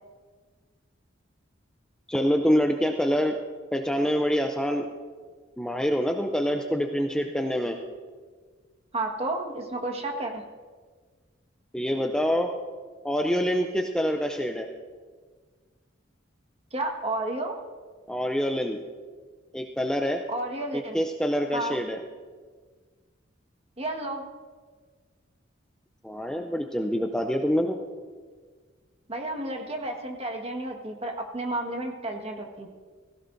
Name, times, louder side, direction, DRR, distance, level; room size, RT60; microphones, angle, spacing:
voice 1, 2.1-3.3 3.7-4.9 5.6-7.8 11.7-12.5 13.0-14.7 18.1-18.8 19.5-20.2 20.7-22.0 26.0-27.8, equal, 5° left, 4 dB, 0.5 m, -26 dB
voice 2, 8.9-10.4 16.7-17.6 20.3-21.0 21.5-21.8 23.8-24.2 29.1-32.7, right 2 dB, 30° right, 2 dB, 1.6 m, -31 dB
17.0 x 16.5 x 2.6 m, 1.5 s
head